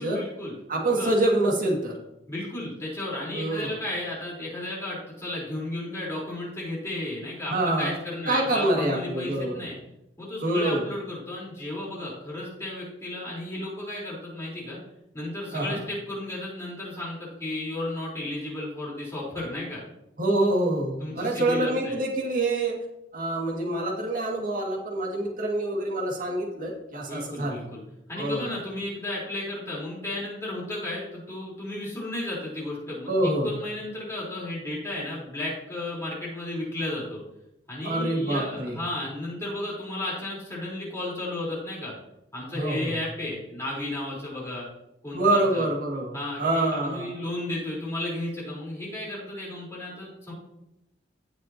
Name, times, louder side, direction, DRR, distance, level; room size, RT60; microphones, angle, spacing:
voice 1, 0.0-0.5 1.0-1.1 2.3-9.8 10.2-14.8 15.1-19.8 21.0-22.0 27.1-27.8 28.1-37.2 37.7-41.9 42.3-44.7 45.0-45.7 46.1-50.3, left 1 dB, 15° left, -6 dB, 3.9 m, -33 dB
voice 2, 0.7-1.9 3.3-3.7 7.5-7.9 8.3-9.7 10.4-10.8 15.5-15.8 20.2-22.8 23.1-27.7 28.1-28.5 33.1-33.5 37.8-38.8 42.5-43.0 45.1-47.1, right 1 dB, 45° right, -1 dB, 2.1 m, -26 dB
17.0 x 6.2 x 2.9 m, 0.86 s
head